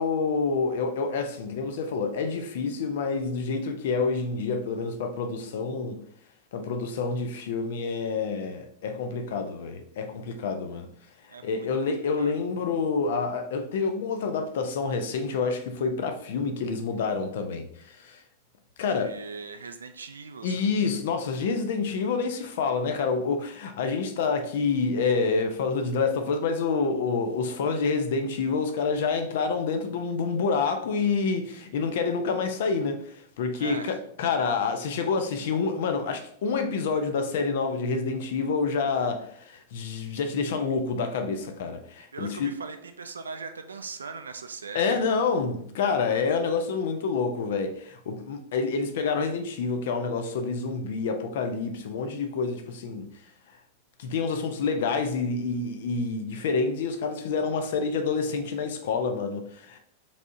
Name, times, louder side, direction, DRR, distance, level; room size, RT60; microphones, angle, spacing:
voice 1, 0.0-6.0 6.5-10.9 11.4-18.2 18.8-19.2 20.4-42.5 44.7-53.1 54.0-59.8, left 4 dB, 55° left, 0.6 m, -28 dB
voice 2, 11.3-11.7 12.2-12.3 18.9-21.0 33.6-34.0 42.1-44.9, right 4 dB, 70° right, 0.3 m, -40 dB
5.1 x 3.4 x 2.6 m
figure-of-eight pair, 90°, 0 cm